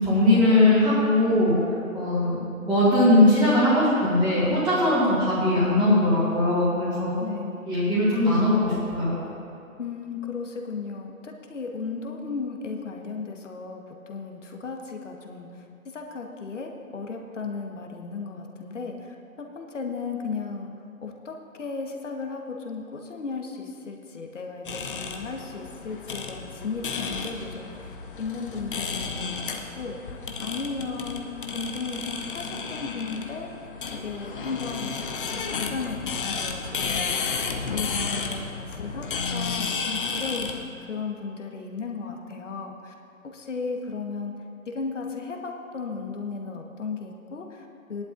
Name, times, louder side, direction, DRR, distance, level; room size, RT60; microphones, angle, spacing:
voice 1, 0.0-7.1 7.7-9.2, left 1 dB, 5° right, -15 dB, 2.0 m, -20 dB
voice 2, 7.2-7.7 9.8-15.5 15.9-20.7 21.0-33.5 33.9-35.0 35.3-37.5 37.7-42.9 43.3-44.3 44.7-48.0, left 4 dB, 55° left, 2 dB, 1.5 m, -35 dB
sound 1, 24.7-40.6, left 5 dB, 35° left, 0.9 m, -32 dB
17.5 x 11.0 x 2.6 m, 2.7 s
figure-of-eight pair, 145°, 43 cm